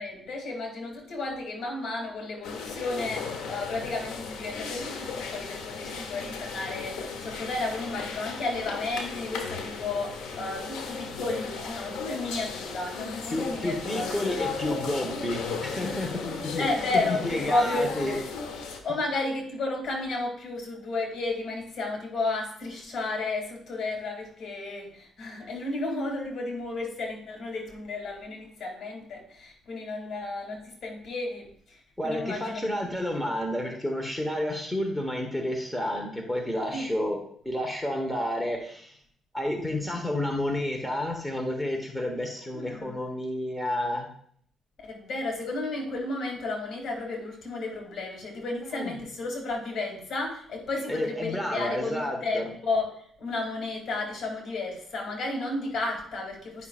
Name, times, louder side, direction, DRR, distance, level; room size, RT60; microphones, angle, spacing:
voice 1, 0.0-14.5 16.6-18.2 18.8-32.8 36.7-36.9 42.5-43.0 44.8-56.7, left 2 dB, 60° left, 1 dB, 2.5 m, -33 dB
sound 1, 2.4-18.8, left 5 dB, 90° left, 1.0 m, -36 dB
voice 2, 13.3-16.6 16.9-18.2 32.0-37.2 37.4-38.9 39.3-44.1 48.7-48.9 50.9-52.5, left 1 dB, 5° left, 2 dB, 1.1 m, -30 dB
9.7 x 5.8 x 2.4 m, 0.62 s
cardioid pair, 90°, 0 cm